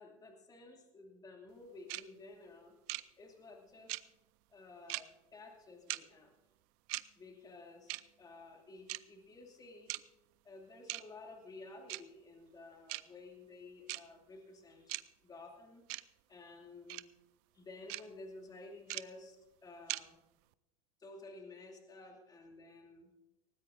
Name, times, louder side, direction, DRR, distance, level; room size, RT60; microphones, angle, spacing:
voice 1, 0.0-2.7 3.2-4.0 4.5-6.3 7.2-9.9 10.4-14.9 15.2-15.8 16.3-17.0 17.5-20.2 21.0-23.1, left 3 dB, 20° left, 1 dB, 2.7 m, -53 dB
sound 1, 1.9-2.0 2.9-3.0 3.9-4.0 4.9-5.0 5.9-6.0 6.9-7.0 7.9-8.0 8.9-9.0 9.9-10.0 10.9-11.0 11.9-12.0 12.9-13.0 13.9-14.0 14.9-15.0 15.9-16.0 16.9-17.0 17.9-18.0 18.9-19.0 19.9-20.0, right 24 dB, 55° right, 0.6 m, -38 dB
19.0 x 18.0 x 2.7 m, 0.97 s
hypercardioid pair, 105°, 18 cm